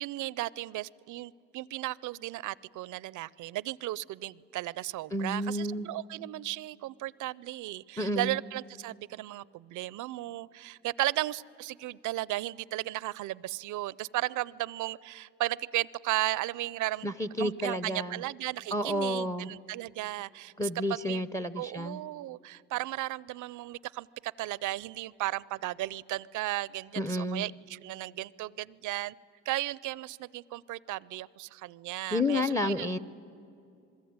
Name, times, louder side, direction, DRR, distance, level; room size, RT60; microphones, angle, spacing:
voice 1, 0.0-17.1 17.4-21.2 21.6-29.1 29.5-32.9, right 16 dB, 80° right, 22 dB, 0.6 m, -35 dB
voice 2, 5.1-5.9 8.0-8.4 17.0-18.2 18.7-19.5 20.6-22.0 27.0-27.4 32.1-33.0, left 1 dB, 10° left, 15 dB, 0.7 m, -30 dB
27.0 x 21.5 x 9.5 m, 2.6 s
cardioid pair, 90°, 30 cm